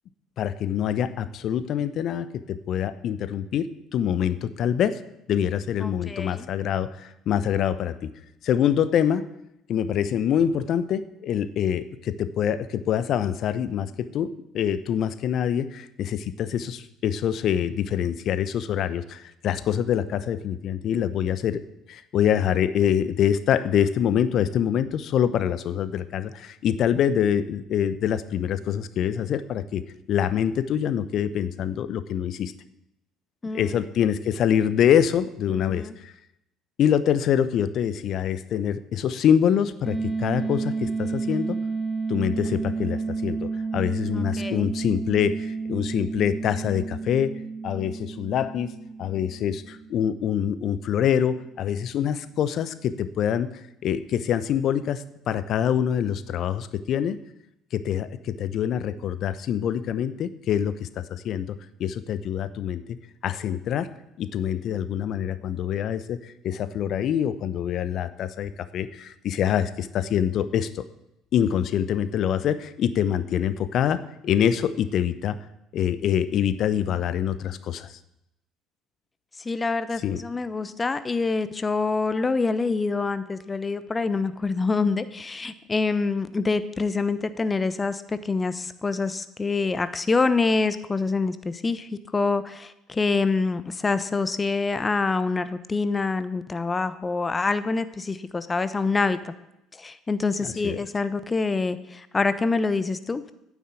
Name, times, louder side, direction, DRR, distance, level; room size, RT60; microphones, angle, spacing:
voice 1, 0.4-5.0 5.3-8.1 8.4-9.3 9.7-21.6 21.9-29.8 30.1-32.5 33.5-36.1 36.8-41.6 42.1-48.7 49.0-53.5 53.8-57.2 57.7-63.0 63.2-63.9 64.2-70.8 71.3-75.4 75.7-77.9 80.0-80.2 100.4-100.8, left 9 dB, 55° left, 14 dB, 0.8 m, -25 dB
voice 2, 5.8-6.5 33.4-33.8 35.5-36.0 44.1-44.7 79.4-99.3 99.8-103.3, left 4 dB, 25° left, 13 dB, 1.0 m, -26 dB
sound 1, 39.8-50.5, right 4 dB, 5° right, 1.7 m, -31 dB
9.5 x 7.3 x 9.0 m, 0.85 s
hypercardioid pair, 60°, 0 cm